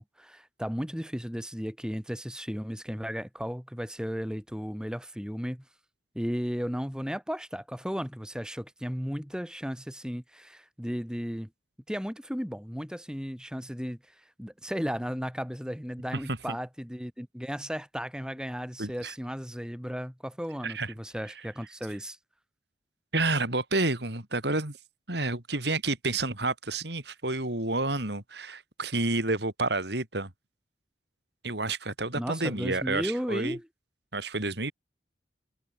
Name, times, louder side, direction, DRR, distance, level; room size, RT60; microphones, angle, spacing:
voice 1, 0.0-5.6 6.1-11.5 11.9-14.0 14.4-22.2 32.1-33.7, equal, 5° right, 4.9 m, -35 dB
voice 2, 18.8-19.1 20.6-20.9 23.1-24.8 25.1-30.3 31.4-33.6 34.1-34.7, right 2 dB, 60° right, 3.8 m, -30 dB
head